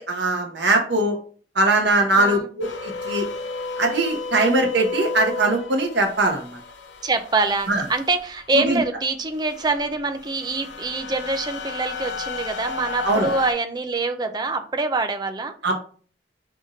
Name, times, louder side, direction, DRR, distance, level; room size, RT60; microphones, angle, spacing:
voice 1, 0.1-1.2 1.5-3.3 3.8-6.6 7.7-7.8 8.5-8.8 13.0-13.3 15.6-15.8, right 2 dB, 75° right, 2 dB, 1.2 m, -21 dB
voice 2, 2.1-2.5 7.0-15.5, right 3 dB, 25° right, 7 dB, 0.5 m, -25 dB
sound 1, 2.6-8.8 9.3-13.5, left 4 dB, 80° left, 0.6 m, -33 dB
4.9 x 3.6 x 2.7 m, 0.42 s
head